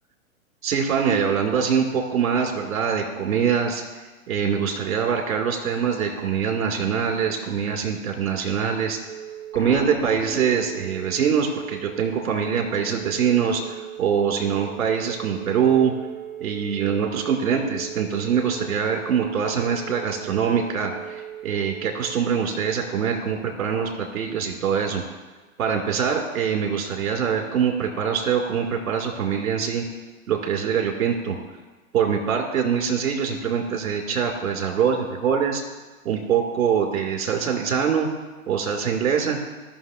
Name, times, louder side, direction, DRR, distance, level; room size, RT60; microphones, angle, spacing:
voice 1, 0.6-3.8 4.3-9.0 9.5-13.6 14.0-15.9 16.4-25.0 25.6-29.8 30.3-31.3 31.9-35.6 36.0-38.1 38.5-39.4, right 7 dB, 70° right, 2 dB, 2.4 m, -23 dB
Telephone, 9.0-22.2, right 11 dB, 25° right, 3.3 m, -38 dB
Explosion, 9.5-11.4, left 3 dB, 10° left, 0.5 m, -37 dB
17.5 x 6.2 x 2.5 m, 1.2 s
hypercardioid pair, 125°, 43 cm